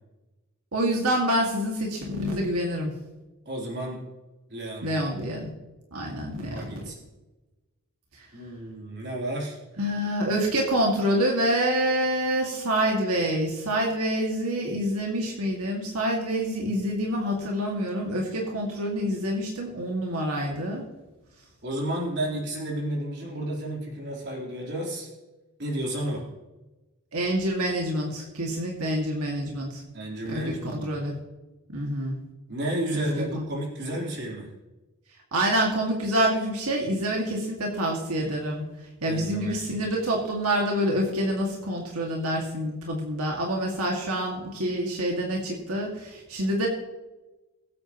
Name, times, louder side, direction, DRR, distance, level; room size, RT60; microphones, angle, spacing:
voice 1, 0.7-2.9 4.8-5.5 5.9-6.8 9.8-20.9 27.1-29.8 30.3-30.4 30.8-31.1 31.7-32.2 32.9-33.0 33.3-33.4 35.3-38.7 39.0-46.7, equal, 90° right, -1 dB, 2.1 m, -27 dB
voice 2, 3.5-4.0 4.5-5.3 6.5-7.0 8.3-9.6 21.6-25.1 25.6-26.2 29.9-31.0 32.5-34.5 39.1-39.9, right 1 dB, 50° right, -2 dB, 3.8 m, -32 dB
22.0 x 8.6 x 3.1 m, 1.1 s
head